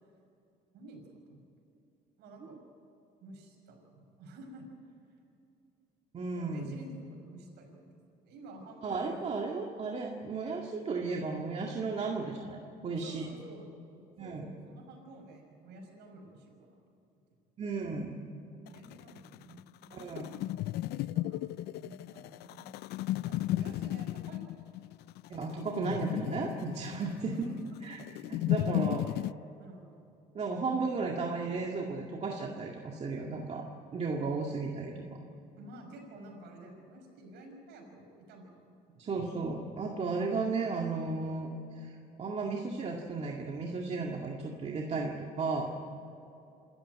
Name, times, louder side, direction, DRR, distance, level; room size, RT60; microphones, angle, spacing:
voice 1, 2.2-2.6 3.2-5.2 6.3-7.9 8.2-9.3 12.9-16.8 18.5-25.0 27.1-27.8 28.8-29.3 29.6-29.9 35.6-39.0, right 1 dB, 85° right, 3 dB, 5.8 m, -51 dB
voice 2, 6.1-6.7 8.8-13.3 14.2-14.5 17.6-18.2 19.9-20.3 25.3-27.3 27.8-28.0 28.3-29.0 30.3-33.7 33.9-35.0 39.0-45.7, right 4 dB, 40° right, 0 dB, 2.1 m, -34 dB
sound 1, 18.7-29.3, left 15 dB, 75° left, 0.4 m, -35 dB
27.0 x 13.5 x 9.2 m, 2.8 s
cardioid pair, 110°, 17 cm